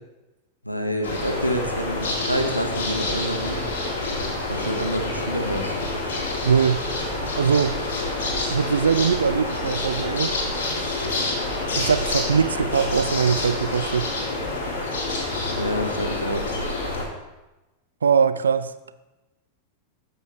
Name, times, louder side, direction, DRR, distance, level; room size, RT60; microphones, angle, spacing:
voice 1, 0.6-3.6 4.5-5.8 15.5-16.5, equal, 90° left, 4 dB, 1.0 m, -27 dB
sound 1, 1.0-17.0, left 2 dB, 55° left, 2.0 m, -27 dB
voice 2, 6.4-6.9 7.3-7.8 8.5-10.3 11.8-14.1 18.0-18.7, right 6 dB, 70° right, 13 dB, 0.4 m, -21 dB
14.0 x 5.3 x 3.2 m, 1.0 s
figure-of-eight pair, 90°, 0 cm